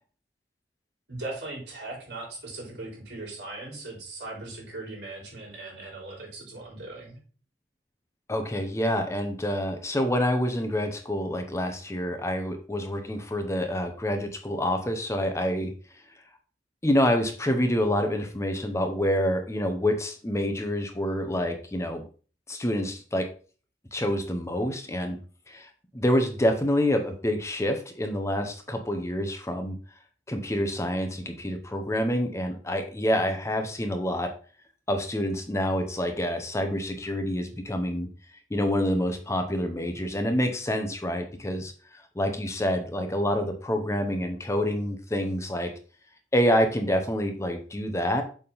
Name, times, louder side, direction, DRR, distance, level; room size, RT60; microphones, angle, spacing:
voice 1, 1.1-7.2, right 2 dB, 70° right, -2 dB, 3.7 m, -39 dB
voice 2, 8.3-15.7 16.8-22.0 22.5-23.3 23.9-25.2 25.5-29.8 30.3-34.3 34.9-38.1 38.5-45.7 46.3-48.2, equal, 15° left, 6 dB, 0.8 m, -27 dB
6.9 x 3.6 x 5.5 m, 0.39 s
head